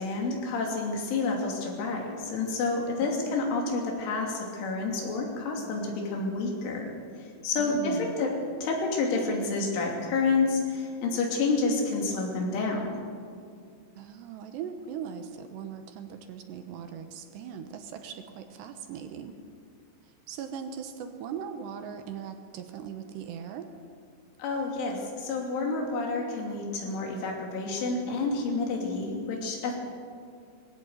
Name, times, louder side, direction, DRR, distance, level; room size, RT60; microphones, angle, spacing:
voice 1, 0.0-6.9 7.2-8.3 8.6-13.0 24.4-29.8, left 3 dB, 80° left, 0 dB, 5.3 m, -29 dB
voice 2, 3.0-3.3 7.6-8.2 14.0-19.3 20.3-23.7, right 7 dB, 75° right, 7 dB, 3.0 m, -39 dB
20.5 x 16.0 x 8.0 m, 2.2 s
omnidirectional pair, 5.5 m